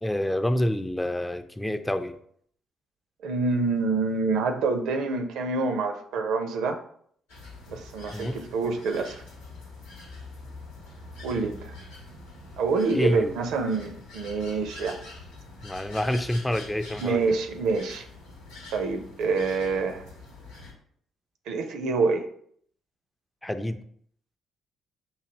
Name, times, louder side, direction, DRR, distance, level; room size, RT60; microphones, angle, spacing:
voice 1, 0.0-2.2 8.1-8.4 12.9-13.4 15.6-17.3 23.4-23.8, left 1 dB, 10° left, 9 dB, 0.4 m, -28 dB
voice 2, 3.2-6.8 7.7-9.2 11.2-11.7 12.6-15.0 17.0-18.1 18.7-20.1 21.5-22.3, right 4 dB, 65° right, 6 dB, 0.4 m, -27 dB
sound 1, 7.3-20.7, left 2 dB, 80° left, 0.9 m, -45 dB
5.4 x 2.5 x 2.9 m, 0.64 s
hypercardioid pair, 45°, 0 cm